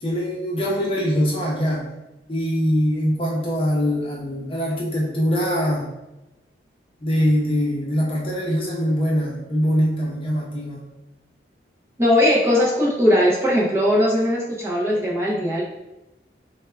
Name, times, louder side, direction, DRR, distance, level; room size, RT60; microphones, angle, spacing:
voice 1, 0.0-1.9 2.3-5.9 7.0-10.8, equal, 30° left, -3 dB, 0.6 m, -23 dB
voice 2, 12.0-15.6, left 1 dB, 15° right, -5 dB, 0.5 m, -19 dB
3.4 x 2.2 x 3.2 m, 0.97 s
head